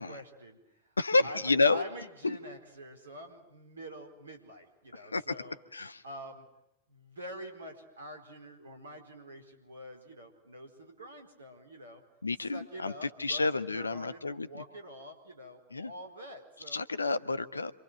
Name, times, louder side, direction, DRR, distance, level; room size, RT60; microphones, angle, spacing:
voice 1, 0.0-1.0 1.2-5.6 6.0-6.5 6.9-12.0 12.5-16.8, equal, 70° right, 5 dB, 4.4 m, -46 dB
voice 2, 1.0-1.8 2.2-2.4 4.9-5.3 5.7-6.0 12.2-14.5 15.7-15.9 16.7-17.7, left 3 dB, 80° left, 14 dB, 1.1 m, -29 dB
27.5 x 26.0 x 7.9 m, 0.86 s
figure-of-eight pair, 90°, 0 cm